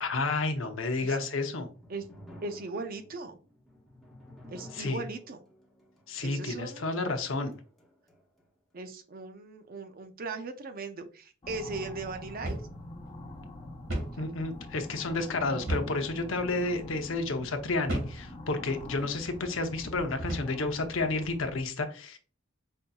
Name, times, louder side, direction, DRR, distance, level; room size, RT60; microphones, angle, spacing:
voice 1, 0.0-1.7 4.7-5.0 6.1-7.5 14.2-22.2, left 3 dB, 80° left, 6 dB, 0.7 m, -31 dB
sound 1, 1.6-8.5, equal, ahead, 0.9 m, -54 dB
voice 2, 2.4-3.4 4.5-5.4 6.2-7.0 8.7-12.6 14.2-14.3, right 3 dB, 45° right, 8 dB, 0.5 m, -38 dB
sound 2, 11.4-21.6, left 1 dB, 30° left, 1.0 m, -45 dB
sound 3, 12.4-12.7 13.1-13.2 13.9-14.2 15.7-16.0 16.7-16.9 17.9-18.2 19.0-19.2 20.2-20.6, right 1 dB, 90° right, 1.7 m, -34 dB
5.3 x 2.6 x 2.3 m, 0.37 s
head